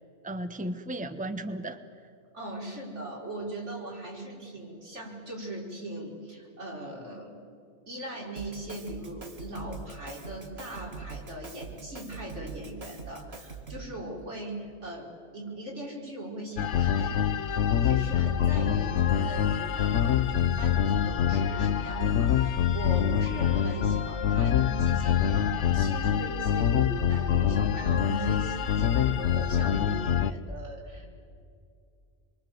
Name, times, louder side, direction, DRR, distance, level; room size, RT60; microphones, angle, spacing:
voice 1, 0.2-1.8, right 1 dB, 5° right, 8 dB, 1.1 m, -34 dB
voice 2, 2.3-7.4 7.9-31.1, right 1 dB, 85° right, -2 dB, 5.4 m, -39 dB
Drum kit, 8.4-14.0, right 5 dB, 60° right, 2.6 m, -43 dB
sound 1, 16.6-30.3, left 8 dB, 80° left, 1.1 m, -25 dB
28.0 x 23.0 x 7.8 m, 2.4 s
omnidirectional pair, 1.2 m